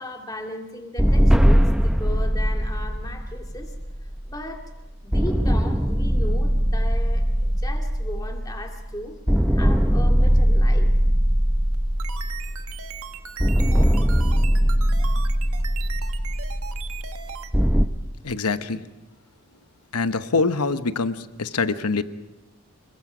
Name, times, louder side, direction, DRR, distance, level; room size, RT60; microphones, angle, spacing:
voice 1, 0.0-3.7 4.3-4.7 5.0-9.2 9.5-10.9, left 1 dB, 15° left, 2 dB, 2.3 m, -36 dB
sound 1, 1.0-4.6 5.1-8.9 9.3-12.9 13.4-17.9, equal, 5° right, 0.7 m, -20 dB
sound 2, 11.7-17.5, right 8 dB, 75° right, 1.5 m, -38 dB
voice 2, 18.2-18.8 19.9-22.0, left 4 dB, 90° left, 11 dB, 1.0 m, -24 dB
27.5 x 22.0 x 5.1 m, 1.1 s
head